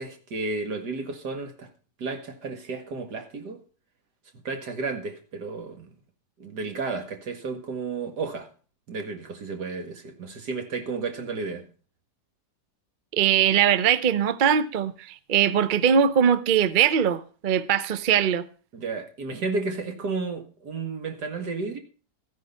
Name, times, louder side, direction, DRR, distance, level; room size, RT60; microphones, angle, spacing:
voice 1, 0.0-1.7 2.0-3.6 4.4-5.9 6.4-8.5 8.9-11.7 18.7-21.8, right 4 dB, 75° right, 2.4 m, -32 dB
voice 2, 13.1-18.4, right 8 dB, 50° right, 0.6 m, -21 dB
14.5 x 9.5 x 5.5 m
omnidirectional pair, 1.8 m